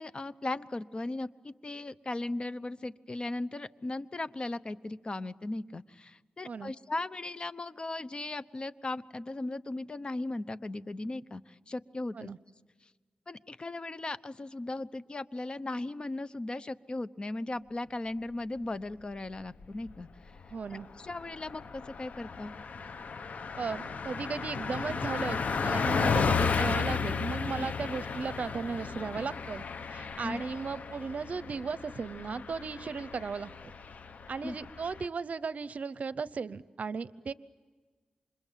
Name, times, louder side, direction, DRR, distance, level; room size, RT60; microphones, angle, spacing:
voice 1, 0.0-12.3 13.3-20.1 21.0-22.5 30.2-30.4 34.4-34.6, left 2 dB, 40° left, 14 dB, 0.9 m, -37 dB
Car passing by, 19.4-20.0 20.4-20.5 20.8-35.1, left 5 dB, 70° left, 1.1 m, -34 dB
voice 2, 20.5-20.9 23.6-29.7 29.9-33.5 34.3-37.3, right 5 dB, 65° right, 16 dB, 0.8 m, -36 dB
29.0 x 26.5 x 7.5 m, 1.4 s
wide cardioid pair, 80°, 3 cm